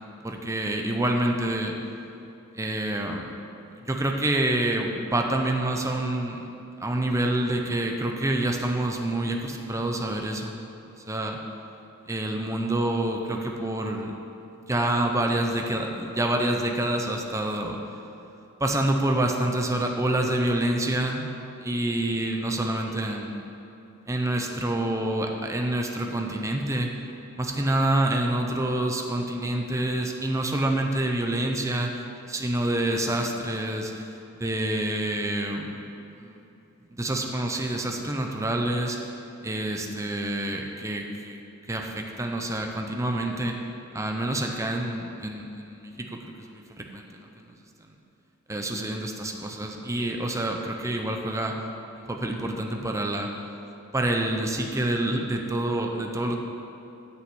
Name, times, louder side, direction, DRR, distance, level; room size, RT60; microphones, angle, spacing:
voice 1, 0.2-1.7 2.5-3.3 3.8-6.4 6.8-10.5 11.1-11.4 12.1-14.1 14.6-17.8 18.6-21.3 21.6-23.4 24.1-26.9 27.4-31.9 32.3-34.1 34.4-35.7 36.2-36.4 36.9-39.1 39.4-41.4 41.7-43.6 43.9-47.5 48.5-51.6 52.0-53.3 53.9-56.3, right 1 dB, 15° right, 2 dB, 0.8 m, -27 dB
9.6 x 5.7 x 8.4 m, 2.8 s
head